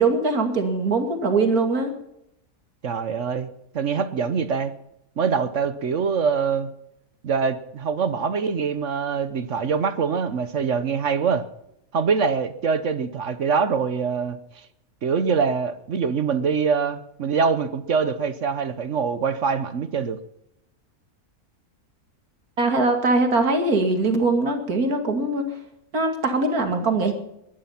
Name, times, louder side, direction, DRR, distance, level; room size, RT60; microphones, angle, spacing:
voice 1, 0.0-1.9 22.6-25.4 25.9-27.1, right 3 dB, 75° right, 6 dB, 2.8 m, -21 dB
voice 2, 2.8-3.5 3.7-4.7 5.2-6.7 7.2-11.5 11.9-14.4 15.0-20.2, right 5 dB, 55° right, 13 dB, 1.2 m, -24 dB
21.5 x 11.5 x 5.7 m, 0.81 s
omnidirectional pair, 1.6 m